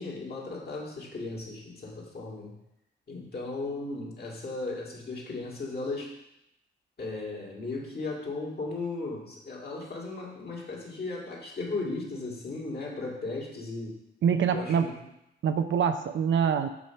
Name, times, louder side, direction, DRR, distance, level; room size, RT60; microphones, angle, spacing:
voice 1, 0.0-2.5 3.1-6.1 7.0-14.0 14.5-15.0, left 3 dB, 50° left, -2 dB, 2.0 m, -36 dB
voice 2, 14.2-14.9 15.4-16.7, right 7 dB, 65° right, 8 dB, 0.6 m, -25 dB
7.0 x 3.2 x 5.6 m, 0.84 s
cardioid pair, 65°, 21 cm